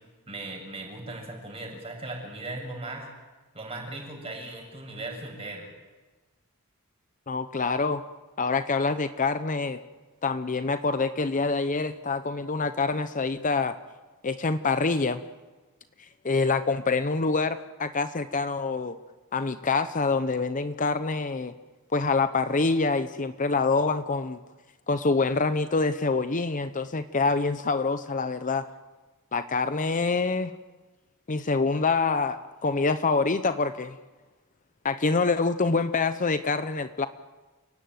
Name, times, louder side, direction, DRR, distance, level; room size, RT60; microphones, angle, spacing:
voice 1, 0.3-3.1 3.5-5.7, right 2 dB, 25° right, 0 dB, 7.9 m, -38 dB
voice 2, 7.3-8.0 8.4-9.8 10.2-13.8 14.2-15.2 16.0-19.0 19.3-21.5 21.9-24.4 24.9-28.6 29.3-30.5 31.3-34.0 34.8-37.1, left 4 dB, 35° left, 11 dB, 0.7 m, -26 dB
29.5 x 17.0 x 9.3 m, 1.3 s
head